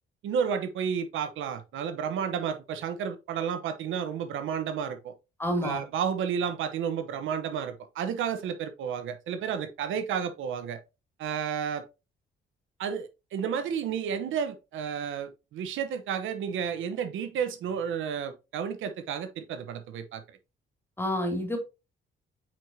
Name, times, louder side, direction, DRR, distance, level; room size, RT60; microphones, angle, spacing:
voice 1, 0.2-5.1 5.6-10.8 11.2-11.8 12.8-20.4, right 7 dB, 80° right, 1.0 m, -31 dB
voice 2, 5.4-5.8 21.0-21.6, equal, 10° left, 2.9 m, -28 dB
8.8 x 4.8 x 2.8 m
cardioid pair, 90°, 20 cm